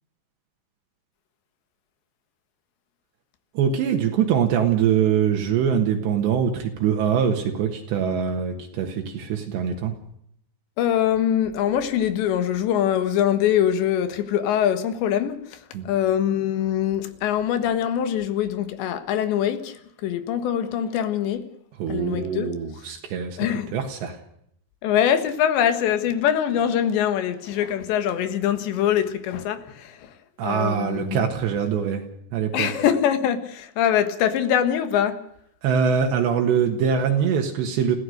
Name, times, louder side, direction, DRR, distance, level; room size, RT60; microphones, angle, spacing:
voice 1, 3.6-10.0 15.7-15.9 21.8-24.2 30.4-32.1 32.3-32.7 35.6-38.0, right 7 dB, 75° right, 3.7 m, -23 dB
voice 2, 10.8-21.4 21.9-22.6 23.4-23.7 24.8-30.1 30.4-31.2 32.5-35.2, left 9 dB, 75° left, 3.8 m, -23 dB
28.0 x 16.0 x 6.6 m
omnidirectional pair, 5.1 m